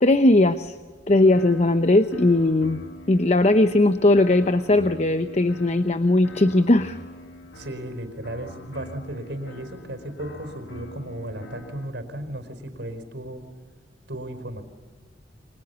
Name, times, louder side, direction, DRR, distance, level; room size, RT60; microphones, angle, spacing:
voice 1, 0.0-0.7 1.1-2.8 3.1-7.0, left 2 dB, 35° left, 10 dB, 0.8 m, -19 dB
sound 1, 1.1-11.9, left 1 dB, 75° left, 2.6 m, -44 dB
voice 2, 7.5-13.4 14.1-14.6, right 1 dB, 65° right, 9 dB, 4.8 m, -35 dB
29.5 x 25.0 x 7.0 m, 1.4 s
head